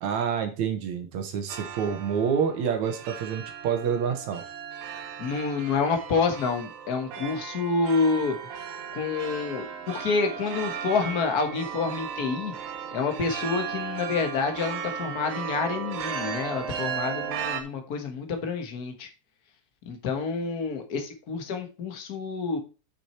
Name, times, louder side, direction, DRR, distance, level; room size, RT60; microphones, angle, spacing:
voice 1, 0.0-4.4, right 7 dB, 65° right, 6 dB, 2.3 m, -28 dB
sound 1, 1.5-17.6, right 7 dB, 85° right, 2.9 m, -36 dB
voice 2, 5.2-8.4 8.9-12.5 12.9-19.1 19.9-22.6, left 4 dB, 65° left, 6 dB, 0.9 m, -28 dB
8.1 x 6.2 x 4.4 m, 0.32 s
omnidirectional pair, 3.9 m